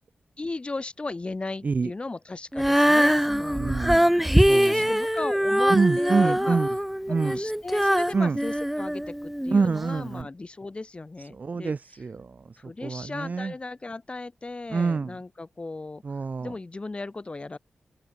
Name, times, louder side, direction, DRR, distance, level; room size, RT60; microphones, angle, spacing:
voice 1, 0.4-4.0 4.5-6.6 7.1-11.7 12.6-16.0 16.4-17.6, left 3 dB, 30° left, 7.6 m, -36 dB
Female singing, 2.5-9.6 10.2-10.3, equal, 5° right, 0.8 m, -23 dB
voice 2, 3.5-4.1 4.5-4.8 5.7-6.7 7.1-7.4 8.1-8.4 9.5-10.3 11.3-13.5 14.7-15.2 16.0-16.5, right 4 dB, 50° right, 4.3 m, -26 dB
open air
wide cardioid pair, 100°, 4 cm